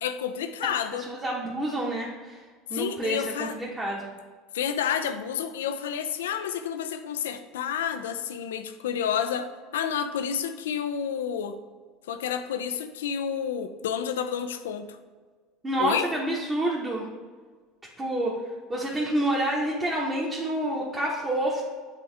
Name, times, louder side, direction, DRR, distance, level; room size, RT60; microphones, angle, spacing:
voice 1, 0.0-1.0 2.7-3.6 4.5-11.6 12.1-15.0 15.8-16.1, left 8 dB, 75° left, 9 dB, 0.4 m, -30 dB
voice 2, 1.1-2.4 2.7-4.1 15.6-17.1 18.0-18.4 18.7-21.6, right 1 dB, 20° right, -4 dB, 1.2 m, -28 dB
8.5 x 3.5 x 3.3 m, 1.5 s
figure-of-eight pair, 70°, 0 cm